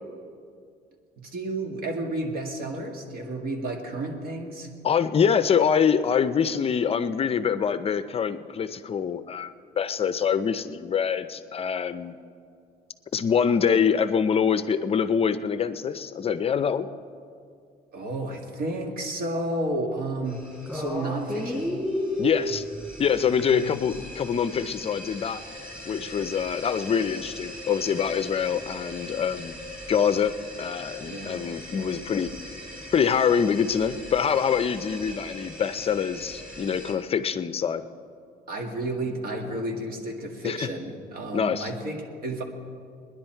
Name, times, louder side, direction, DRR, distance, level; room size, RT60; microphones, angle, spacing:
voice 1, 1.2-4.7 17.9-20.4 20.7-21.7 23.5-23.7 31.1-31.3 38.5-42.4, right 1 dB, 60° right, 3 dB, 2.0 m, -31 dB
voice 2, 4.8-12.2 13.1-16.9 22.2-22.6 23.0-25.4 25.9-29.6 29.9-30.3 30.6-32.3 32.9-37.8 40.4-40.7 41.3-41.7, left 7 dB, 35° left, 12 dB, 0.5 m, -25 dB
sound 1, 20.3-36.9, equal, 5° right, 4.3 m, -37 dB
21.0 x 10.5 x 4.5 m, 2.3 s
cardioid pair, 110°, 17 cm